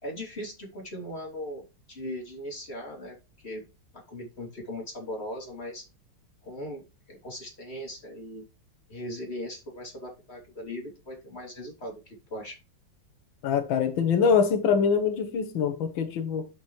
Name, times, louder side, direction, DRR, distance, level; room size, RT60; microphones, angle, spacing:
voice 1, 0.0-1.6 1.9-3.2 3.4-3.6 3.9-5.8 6.4-6.8 7.1-8.4 8.9-12.6, left 1 dB, 30° left, 3.6 m, -38 dB
voice 2, 13.4-16.5, left 6 dB, 90° left, 1.8 m, -24 dB
11.0 x 6.2 x 3.2 m
omnidirectional pair, 2.1 m